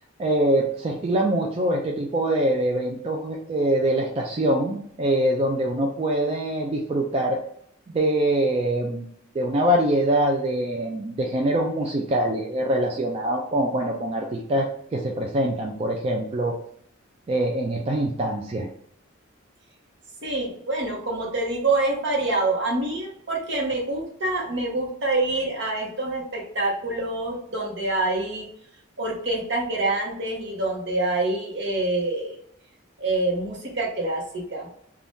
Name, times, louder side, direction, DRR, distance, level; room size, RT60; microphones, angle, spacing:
voice 1, 0.2-7.4 7.9-9.1 9.3-16.6 17.3-18.7, right 1 dB, 30° right, 0 dB, 0.3 m, -24 dB
voice 2, 20.2-28.5 29.0-32.4 33.0-34.2 34.5-34.7, right 2 dB, 60° right, -1 dB, 0.9 m, -26 dB
2.6 x 2.3 x 3.4 m, 0.67 s
head